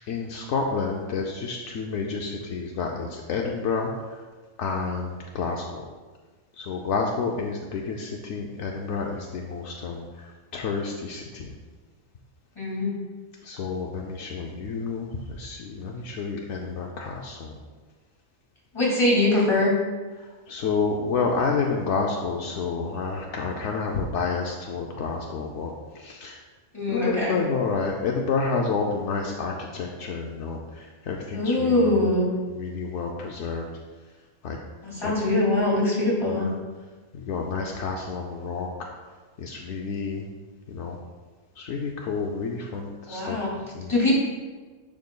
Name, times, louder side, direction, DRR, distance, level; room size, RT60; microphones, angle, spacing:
voice 1, 0.1-4.2 4.6-5.8 6.6-11.5 13.4-17.5 20.2-26.4 26.9-32.1 32.5-33.7 34.4-34.6 35.0-35.1 36.3-36.5 37.1-38.9 39.4-40.3 40.7-41.0 41.6-43.9, left 4 dB, 75° left, 0 dB, 0.9 m, -30 dB
voice 2, 12.6-12.9 18.7-19.7 26.7-27.4 31.3-32.3 34.8-36.5 43.1-43.5 43.9-44.2, left 2 dB, 25° left, -5 dB, 2.1 m, -22 dB
10.5 x 5.0 x 2.2 m, 1.3 s
omnidirectional pair, 1.2 m